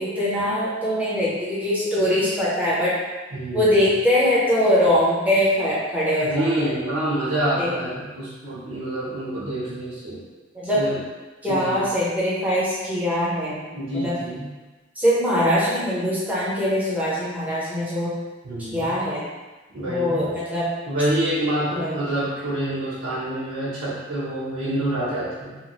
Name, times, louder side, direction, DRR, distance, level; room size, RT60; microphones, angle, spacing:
voice 1, 0.0-3.0 3.5-6.7 7.6-7.7 10.5-10.8 11.4-14.2 15.0-18.1 18.6-19.3 19.8-20.7 21.7-22.0, left 1 dB, 10° right, -8 dB, 0.8 m, -22 dB
voice 2, 3.3-3.8 6.2-10.2 10.7-11.0 11.5-11.8 13.7-14.5 18.4-19.0 19.7-20.4 20.9-25.6, right 1 dB, 90° right, -10 dB, 0.9 m, -27 dB
3.0 x 2.2 x 3.0 m, 1.2 s
head